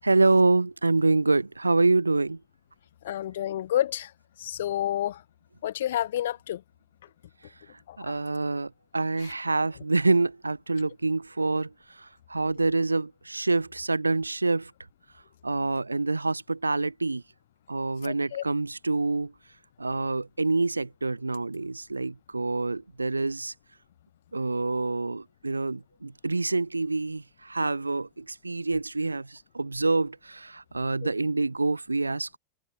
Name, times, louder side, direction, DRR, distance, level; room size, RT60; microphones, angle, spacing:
voice 1, 0.0-2.4 8.0-14.7 15.4-17.2 17.7-19.3 19.8-23.5 24.3-32.4, right 3 dB, 80° right, 0.3 m, -26 dB
voice 2, 3.0-4.1 4.4-5.2 5.6-6.6 7.9-8.0 18.0-18.4, left 12 dB, 60° left, 0.5 m, -29 dB
figure-of-eight pair, 90°, 0 cm